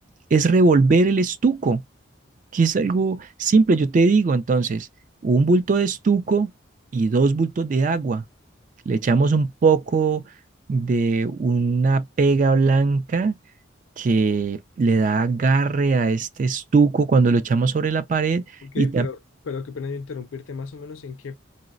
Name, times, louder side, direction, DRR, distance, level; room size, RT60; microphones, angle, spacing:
voice 1, 0.3-1.8 2.5-4.9 5.2-6.5 6.9-8.2 8.9-10.2 10.7-13.4 14.0-18.4 18.8-19.1, right 4 dB, 40° right, 0.3 m, -20 dB
voice 2, 18.6-19.2 19.4-21.4, left 5 dB, 85° left, 0.4 m, -33 dB
3.9 x 2.0 x 2.4 m
head